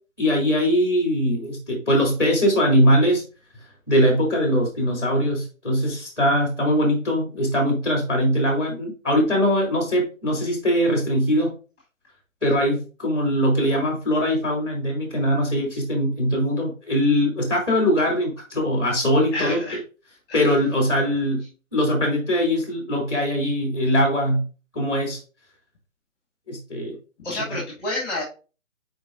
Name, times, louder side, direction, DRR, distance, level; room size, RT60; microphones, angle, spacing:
voice 1, 0.2-3.2 3.9-11.5 12.4-19.6 20.3-21.4 21.7-24.4 24.7-25.2 26.5-27.0 27.5-27.6, equal, 5° right, 0 dB, 2.6 m, -21 dB
voice 2, 19.3-19.8 20.3-20.4 27.2-28.2, left 1 dB, 20° left, -3 dB, 1.6 m, -29 dB
9.5 x 4.6 x 2.6 m, 0.35 s
figure-of-eight pair, 160°, 41 cm